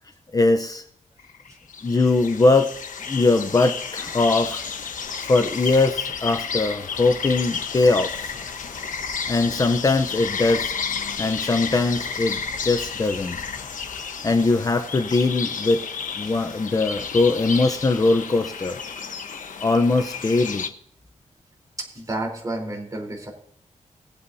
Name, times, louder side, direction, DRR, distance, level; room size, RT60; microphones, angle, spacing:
voice 1, 0.3-0.8 1.8-2.7 3.1-4.6 5.2-8.3 9.3-10.7 11.2-13.4 14.2-15.8 16.2-18.8 19.6-20.6, left 3 dB, 30° left, 6 dB, 0.7 m, -21 dB
sound 1, 1.2-20.7, left 6 dB, 80° left, 1.1 m, -32 dB
voice 2, 21.9-23.3, right 2 dB, 25° right, 0 dB, 3.9 m, -31 dB
20.0 x 8.5 x 2.8 m, 0.65 s
wide cardioid pair, 160°, 13 cm